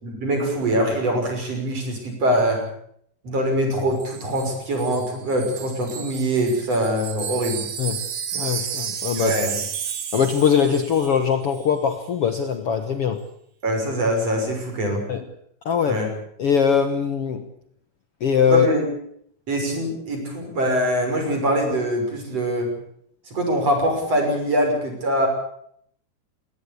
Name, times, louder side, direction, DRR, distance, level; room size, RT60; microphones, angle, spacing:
voice 1, 0.0-2.6 3.2-7.6 9.1-9.5 13.6-15.0 15.9-16.1 18.5-18.9 19.5-22.7 23.3-25.3, right 1 dB, 35° right, 3 dB, 7.0 m, -23 dB
Wind chime, 4.0-11.2 11.5-11.7, right 8 dB, 60° right, 3.7 m, -32 dB
voice 2, 8.3-9.4 10.1-13.2 15.1-15.2 15.6-16.0 16.4-17.4 18.2-18.7, left 7 dB, 80° left, 7 dB, 1.3 m, -21 dB
21.0 x 18.0 x 8.5 m, 0.68 s
omnidirectional pair, 4.8 m